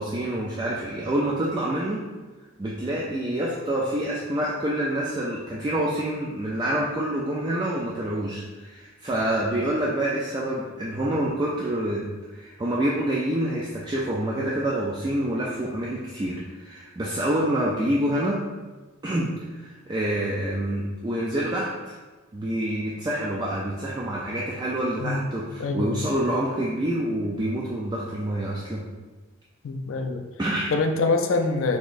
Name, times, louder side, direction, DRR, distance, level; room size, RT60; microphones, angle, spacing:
voice 1, 0.0-2.0 2.6-18.4 19.0-21.9 22.3-28.9 30.4-30.7, right 1 dB, 20° right, -5 dB, 0.3 m, -27 dB
voice 2, 25.6-26.0 29.6-30.3 30.7-31.8, left 3 dB, 70° left, 5 dB, 0.4 m, -25 dB
4.1 x 3.0 x 2.5 m, 1.2 s
head